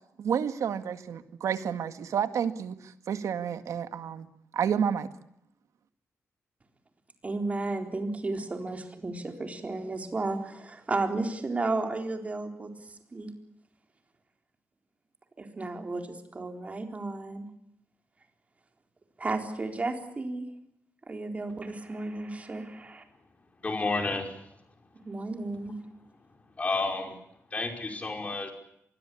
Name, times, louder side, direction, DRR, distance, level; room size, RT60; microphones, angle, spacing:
voice 1, 0.2-2.8 3.1-4.3 4.5-5.1, right 8 dB, 90° right, 10 dB, 2.0 m, -30 dB
voice 2, 7.2-13.3 15.4-17.5 19.2-20.5 21.1-23.0 25.0-25.8, right 2 dB, 25° right, 5 dB, 3.9 m, -33 dB
voice 3, 23.6-24.3 26.6-27.1 27.5-28.5, left 3 dB, 25° left, 4 dB, 5.1 m, -30 dB
26.0 x 21.5 x 8.6 m, 0.76 s
wide cardioid pair, 155°, 5 cm